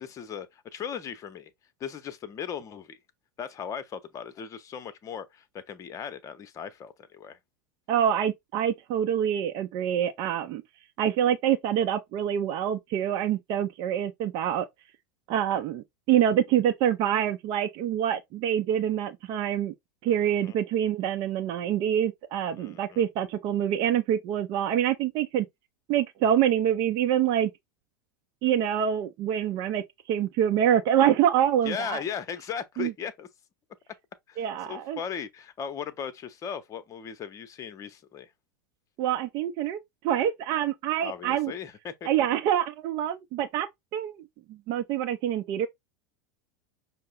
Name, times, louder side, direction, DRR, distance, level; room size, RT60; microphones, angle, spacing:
voice 1, 0.0-1.5 1.8-3.0 3.4-7.4 20.1-20.5 22.6-23.0 31.6-33.3 34.3-38.3 41.0-42.1, left 7 dB, 30° left, 0.8 m, -37 dB
voice 2, 7.9-10.6 11.0-14.7 15.3-19.7 20.0-25.5 25.9-27.5 28.4-29.8 30.1-32.0 32.8-32.9 34.4-35.0 39.0-41.5 42.1-43.7 43.9-44.2 44.5-45.7, right 10 dB, 40° right, 0.6 m, -26 dB
6.3 x 2.1 x 3.9 m
figure-of-eight pair, 85°, 11 cm